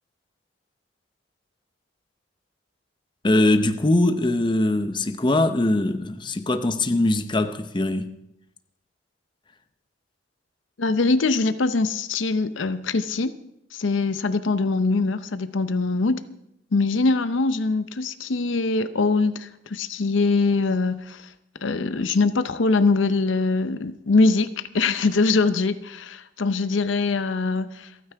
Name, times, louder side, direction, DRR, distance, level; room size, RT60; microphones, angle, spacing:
voice 1, 3.2-8.1, left 2 dB, 25° left, 0.7 m, -22 dB
voice 2, 10.8-13.3 13.7-16.2 16.7-21.3 21.6-27.9, left 3 dB, 85° left, 0.7 m, -23 dB
28.0 x 9.3 x 3.5 m
head